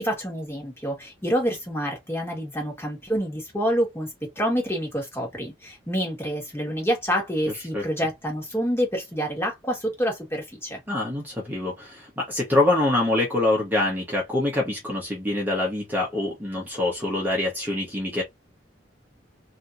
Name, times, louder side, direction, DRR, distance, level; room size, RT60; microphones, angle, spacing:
voice 1, 0.0-10.8, equal, 15° left, 1.6 m, -27 dB
voice 2, 10.9-18.2, left 2 dB, 10° right, 1.1 m, -25 dB
3.4 x 2.8 x 2.6 m
head